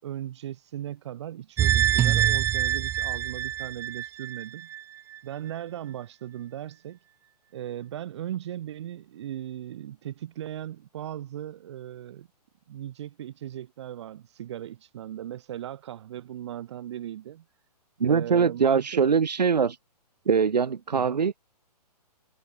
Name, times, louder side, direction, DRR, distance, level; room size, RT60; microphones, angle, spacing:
voice 1, 0.0-4.7 5.2-7.0 7.5-12.3 12.7-17.4 18.0-19.1 20.9-21.2, right 11 dB, 45° right, 6.3 m, -38 dB
sound 1, 1.6-4.8 5.1-5.2, right 11 dB, 10° right, 2.7 m, -25 dB
voice 2, 18.0-19.8 20.3-21.4, right 6 dB, 85° right, 5.4 m, -22 dB
hypercardioid pair, 165°, 21 cm